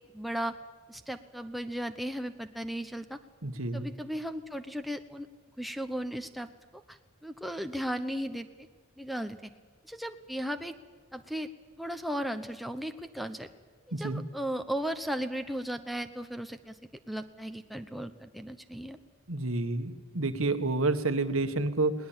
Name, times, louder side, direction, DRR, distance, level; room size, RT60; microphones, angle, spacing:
voice 1, 0.1-0.5 0.9-3.2 3.7-5.3 5.6-6.5 6.9-8.7 9.0-9.5 9.8-10.7 11.1-11.5 11.8-13.5 14.0-19.0, equal, ahead, 7 dB, 0.9 m, -36 dB
voice 2, 3.4-3.9 13.9-14.2 19.3-21.9, right 2 dB, 70° right, 9 dB, 1.6 m, -29 dB
20.5 x 19.5 x 8.8 m, 1.5 s
head